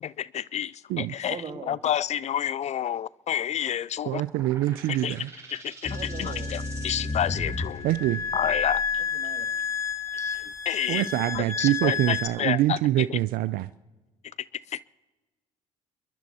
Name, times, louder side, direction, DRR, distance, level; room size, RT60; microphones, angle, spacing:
voice 1, 0.0-0.7 1.0-1.4 1.7-4.2 5.0-5.1 5.5-7.9 8.3-8.8 10.2-10.4 10.7-11.1 11.3-12.8 13.1-13.2 14.7-14.8, left 10 dB, 45° left, 0.4 m, -29 dB
voice 2, 1.3-1.8 5.9-6.5 9.0-9.5, right 5 dB, 40° right, 2.4 m, -39 dB
voice 3, 4.1-5.3 7.8-8.2 10.9-13.7, right 15 dB, 75° right, 0.5 m, -25 dB
sound 1, 4.2-11.5, right 2 dB, 20° right, 4.5 m, -49 dB
sound 2, 5.8-12.2, left 5 dB, 15° left, 4.2 m, -30 dB
28.5 x 11.5 x 4.3 m
supercardioid pair, 70°, 15 cm